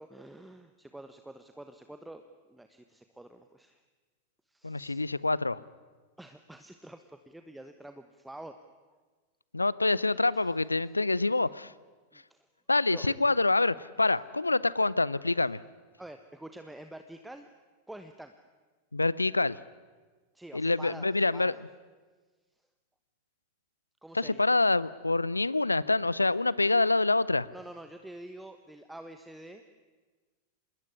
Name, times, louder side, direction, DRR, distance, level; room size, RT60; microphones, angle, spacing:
voice 1, 0.0-3.8 4.5-5.0 6.2-8.6 8.9-9.0 10.3-10.5 12.1-12.5 12.9-13.1 16.0-17.5 17.9-18.3 20.3-21.6 24.0-24.5 27.5-29.6, right 1 dB, 5° right, 8 dB, 1.4 m, -47 dB
voice 2, 4.6-5.6 9.5-11.7 12.7-15.6 18.9-19.6 20.5-21.5 24.1-27.5, left 3 dB, 80° left, 20 dB, 0.7 m, -26 dB
26.5 x 20.5 x 9.8 m, 1.3 s
figure-of-eight pair, 90°, 0 cm